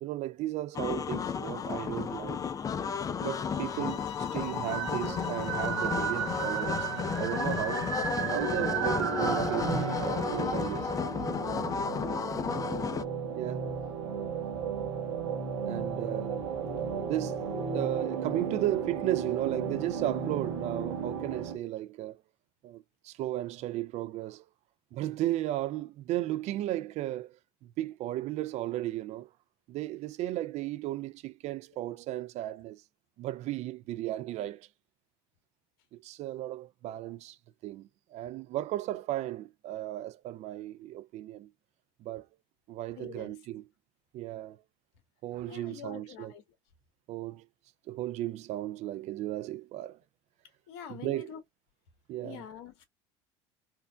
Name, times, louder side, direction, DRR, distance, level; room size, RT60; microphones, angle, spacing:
voice 1, 0.0-2.4 3.2-6.9 7.2-7.9 8.3-10.9 13.4-13.7 15.6-16.5 17.1-22.2 22.6-24.4 24.9-29.3 29.7-32.8 33.2-34.7 35.9-37.4 37.6-41.5 42.0-42.3 42.7-43.6 44.1-44.6 45.2-46.3 47.1-47.4 47.9-50.0 50.9-51.3 52.1-52.4, right 15 dB, 50° right, 0.4 m, -35 dB
sound 1, 0.7-13.0, left 6 dB, 25° left, 0.4 m, -33 dB
sound 2, 3.3-8.3, left 12 dB, 85° left, 0.4 m, -45 dB
sound 3, 4.5-21.6, right 6 dB, 80° right, 0.9 m, -34 dB
voice 2, 43.0-43.4 45.5-46.4 50.7-51.4 52.2-52.8, left 9 dB, 70° left, 1.1 m, -45 dB
4.4 x 2.2 x 2.3 m
hypercardioid pair, 80°, 15 cm